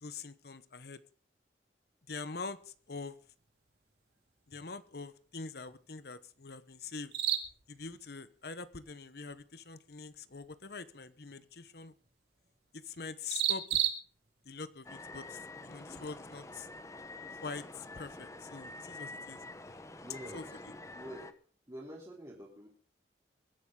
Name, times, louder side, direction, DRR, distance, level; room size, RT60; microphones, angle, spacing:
voice 1, 0.0-1.0 2.1-3.2 4.5-7.1 7.7-11.9 12.7-13.8 14.4-16.7 17.4-19.8 20.3-20.4, left 4 dB, 60° left, 13 dB, 1.0 m, -44 dB
sound 1, 2.5-16.7, right 10 dB, 65° right, 2.5 m, -41 dB
sound 2, 14.8-21.3, left 2 dB, 15° left, 1.0 m, -47 dB
voice 2, 20.0-20.6 20.9-21.3 21.7-22.7, right 1 dB, 20° right, -4 dB, 3.4 m, -46 dB
23.0 x 11.0 x 3.8 m, 0.42 s
head